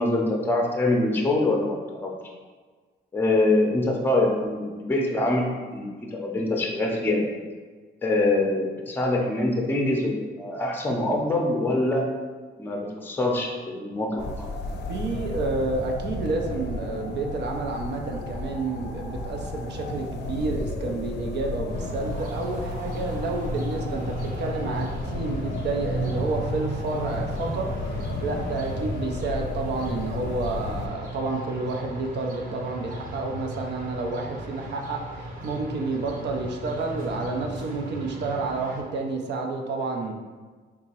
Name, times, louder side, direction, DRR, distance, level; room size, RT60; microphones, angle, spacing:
voice 1, 0.0-2.1 3.1-7.2 8.0-12.0 12.6-14.3, left 2 dB, 10° left, 0 dB, 0.6 m, -24 dB
sound 1, 14.2-30.9, left 2 dB, 60° left, 0.5 m, -33 dB
voice 2, 14.9-40.1, right 3 dB, 60° right, 2 dB, 0.5 m, -30 dB
sound 2, 21.7-38.8, right 1 dB, 45° right, 0.9 m, -36 dB
3.6 x 2.9 x 2.8 m, 1.4 s
cardioid pair, 90°, 20 cm